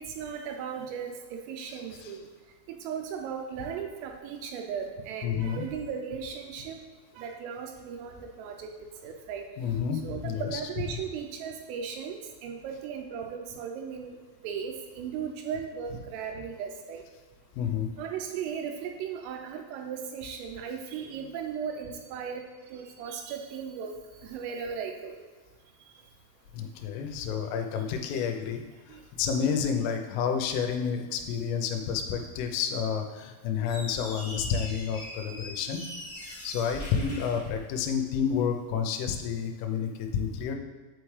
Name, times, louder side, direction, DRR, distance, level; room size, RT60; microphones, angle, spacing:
voice 1, 0.0-2.3 2.7-6.8 7.2-8.7 9.0-9.4 10.0-14.1 14.4-17.0 18.0-22.4 22.7-23.9 24.2-25.1 28.2-28.3 28.9-29.0, right 7 dB, 85° right, 3 dB, 3.1 m, -37 dB
voice 2, 5.2-5.6 9.6-10.6 17.6-17.9 26.5-35.8 36.4-40.6, left 7 dB, 85° left, 5 dB, 3.0 m, -30 dB
Squeak, 33.6-38.2, equal, 65° left, 1.1 m, -41 dB
8.4 x 4.5 x 3.2 m, 1.4 s
omnidirectional pair, 5.9 m